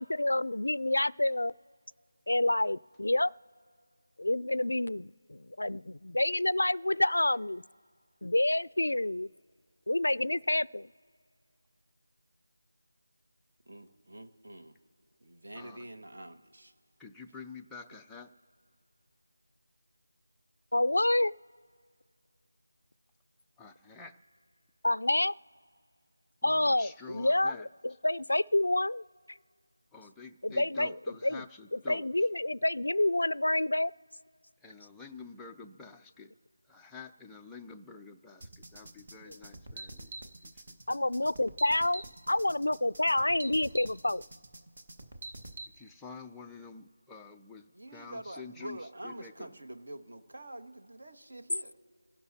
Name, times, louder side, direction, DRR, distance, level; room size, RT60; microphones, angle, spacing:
voice 1, 0.0-1.5 2.3-3.3 4.2-7.6 8.2-9.3 9.9-10.9 20.7-21.3 24.8-25.3 26.4-27.5 28.0-29.0 30.4-30.9 31.2-31.4 31.7-33.9 40.9-42.0 42.3-44.2, left 1 dB, 80° left, 22 dB, 0.4 m, -28 dB
voice 2, 13.7-14.7 15.2-16.7 47.7-51.7, right 1 dB, 55° right, 6 dB, 1.5 m, -46 dB
voice 3, 15.5-15.9 17.0-18.3 23.6-24.2 26.4-27.7 29.9-32.3 34.6-36.3 36.7-40.1 40.4-40.8 45.7-49.6, left 4 dB, 5° left, 0 dB, 0.3 m, -48 dB
sound 1, 38.4-45.7, right 2 dB, 35° right, 1.4 m, -46 dB
28.5 x 11.0 x 4.2 m, 2.2 s
figure-of-eight pair, 175°, 0 cm